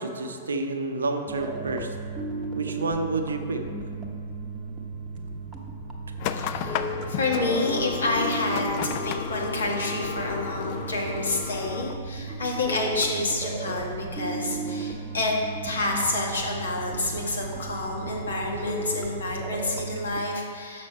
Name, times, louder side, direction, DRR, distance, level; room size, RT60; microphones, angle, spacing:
voice 1, 0.0-1.9 2.6-3.6, right 3 dB, 80° right, 5 dB, 0.7 m, -29 dB
sound 1, 1.3-20.2, right 2 dB, 10° right, 0.9 m, -35 dB
sound 2, 6.2-11.9, left 9 dB, 45° left, 0.3 m, -33 dB
voice 2, 6.3-15.4 15.6-20.9, left 2 dB, 75° left, -1 dB, 1.3 m, -29 dB
6.3 x 6.1 x 4.3 m, 2.3 s
figure-of-eight pair, 110°, 0 cm